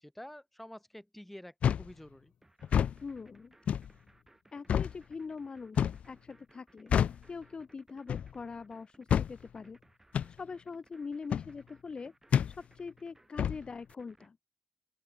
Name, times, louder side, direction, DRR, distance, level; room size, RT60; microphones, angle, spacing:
voice 1, 0.0-2.3, left 1 dB, 5° left, 5.3 m, -49 dB
sound 1, 1.6-1.9 2.6-3.0 3.7-3.9 4.7-4.9 5.8-6.0 6.9-7.2 8.1-8.3 9.1-9.3 10.1-10.3 11.3-11.5 12.3-12.5 13.4-13.6, left 8 dB, 80° left, 0.5 m, -28 dB
sound 2, 2.4-14.3, right 1 dB, 15° right, 5.7 m, -63 dB
voice 2, 3.0-3.6 4.5-7.0 7.3-9.8 10.3-12.1 12.5-14.4, left 5 dB, 45° left, 1.2 m, -43 dB
open air
cardioid pair, 80°, 2 cm